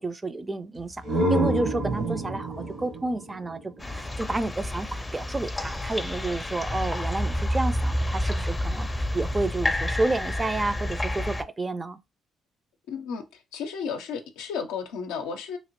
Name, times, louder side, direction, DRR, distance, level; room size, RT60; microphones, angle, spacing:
voice 1, 0.0-3.6 3.9-12.0, right 2 dB, 30° right, 0.4 m, -30 dB
sound 1, 0.8-4.4, right 1 dB, 65° right, 1.1 m, -28 dB
sound 2, 3.8-11.4, left 1 dB, 20° left, 0.5 m, -29 dB
voice 2, 12.9-15.6, left 6 dB, 85° left, 0.5 m, -33 dB
2.9 x 2.6 x 2.9 m
hypercardioid pair, 50°, 0 cm